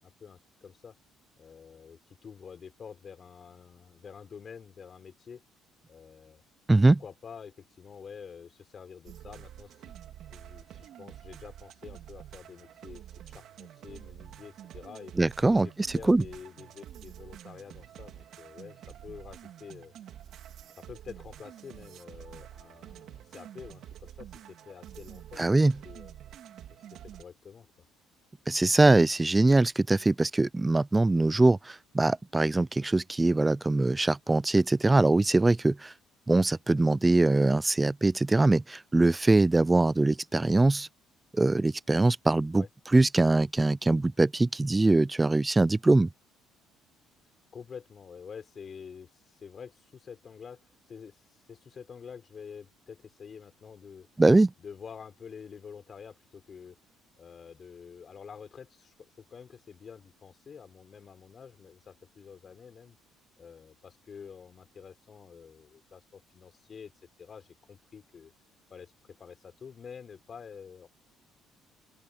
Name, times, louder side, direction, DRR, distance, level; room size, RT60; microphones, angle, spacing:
voice 1, 0.0-1.0 1.4-5.4 5.9-6.4 7.0-9.8 10.3-15.1 15.5-19.9 20.8-26.2 27.2-27.7 42.5-42.7 47.5-54.1 54.6-56.8 57.2-63.0 63.4-66.9 67.2-68.3 68.7-68.9 69.2-70.9, left 6 dB, 35° left, 6.6 m, -48 dB
voice 2, 6.7-7.0 15.2-16.2 25.4-25.8 28.5-35.9 36.3-40.9 41.3-42.6 42.9-46.1 54.2-54.5, right 2 dB, 15° right, 0.4 m, -23 dB
sound 1, 9.0-27.2, right 11 dB, 65° right, 3.8 m, -48 dB
open air
cardioid pair, 110°, 0 cm